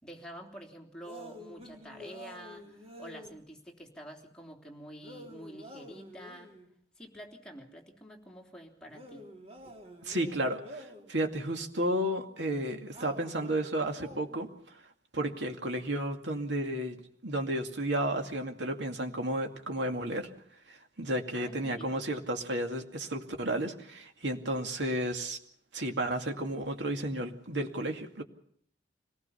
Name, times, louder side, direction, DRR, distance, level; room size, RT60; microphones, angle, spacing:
voice 1, 0.0-6.5 7.0-9.3 21.3-22.0, equal, 5° left, 0 dB, 3.4 m, -48 dB
sound 1, 1.0-3.4 5.0-6.7 8.9-11.1 12.9-14.5, equal, 35° right, 4.1 m, -49 dB
voice 2, 10.0-14.5 15.1-17.0 17.2-20.3 20.7-25.4 25.7-28.2, right 1 dB, 85° right, 4 dB, 2.4 m, -32 dB
25.5 x 19.0 x 5.7 m, 0.63 s
head